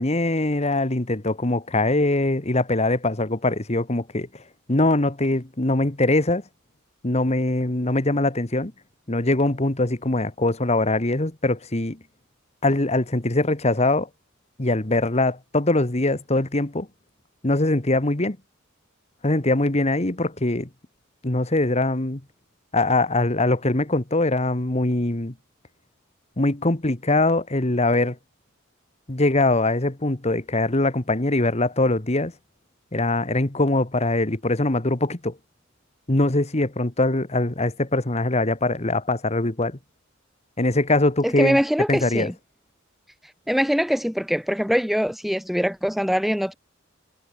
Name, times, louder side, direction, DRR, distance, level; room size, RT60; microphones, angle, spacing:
voice 1, 0.0-4.3 4.7-6.4 7.0-8.7 9.1-12.0 12.6-14.1 14.6-16.9 17.4-18.4 19.2-20.7 21.2-22.2 22.7-25.3 26.4-28.2 29.1-32.3 32.9-35.3 36.1-39.8 40.6-41.6 41.9-42.3, left 2 dB, 30° left, 1.5 m, -22 dB
voice 2, 41.2-42.3 43.5-46.5, equal, ahead, 1.1 m, -23 dB
head